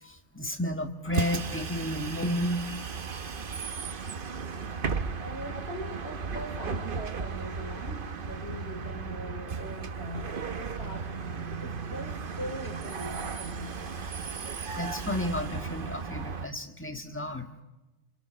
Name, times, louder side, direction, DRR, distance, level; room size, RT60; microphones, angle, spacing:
voice 1, 0.0-2.7 14.8-17.5, left 1 dB, 10° left, 5 dB, 1.6 m, -32 dB
Bus, 1.1-16.5, right 5 dB, 50° right, 1.1 m, -35 dB
voice 2, 5.2-14.0, equal, 60° left, 2 dB, 4.7 m, -41 dB
28.0 x 27.0 x 6.3 m, 1.0 s
omnidirectional pair, 1.2 m